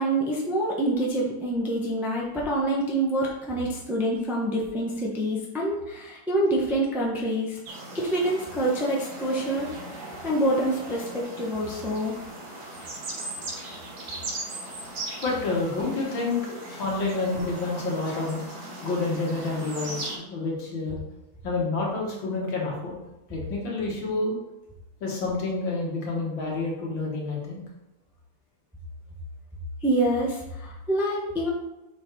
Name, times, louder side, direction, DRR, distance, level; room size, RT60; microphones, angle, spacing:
voice 1, 0.0-7.6 7.9-12.2 29.8-31.5, right 1 dB, ahead, -3 dB, 0.7 m, -26 dB
sound 1, 7.7-20.2, right 2 dB, 55° right, 1.6 m, -38 dB
voice 2, 15.2-21.0 21.4-23.0 23.3-24.4 25.0-27.6, left 3 dB, 70° left, -3 dB, 2.3 m, -29 dB
6.4 x 3.9 x 4.6 m, 0.96 s
omnidirectional pair, 2.2 m